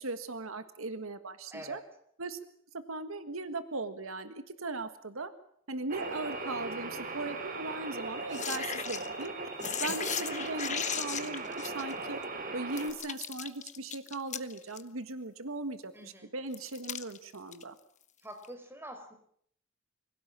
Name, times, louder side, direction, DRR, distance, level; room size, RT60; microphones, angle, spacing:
voice 1, 0.0-1.8 2.2-2.4 2.7-5.3 5.7-9.3 9.8-12.2 12.5-15.9 16.3-17.7, right 3 dB, 85° right, 11 dB, 1.7 m, -38 dB
voice 2, 1.5-1.8 9.9-10.0 15.9-16.3 18.2-19.1, right 1 dB, 10° right, 5 dB, 4.4 m, -46 dB
sound 1, 5.9-12.9, right 3 dB, 40° right, 3.5 m, -38 dB
sound 2, 8.3-9.3 9.6-12.2 12.8-14.8 16.5-17.6 18.4-18.5, left 8 dB, 35° left, 1.2 m, -37 dB
25.0 x 17.0 x 8.9 m, 0.66 s
head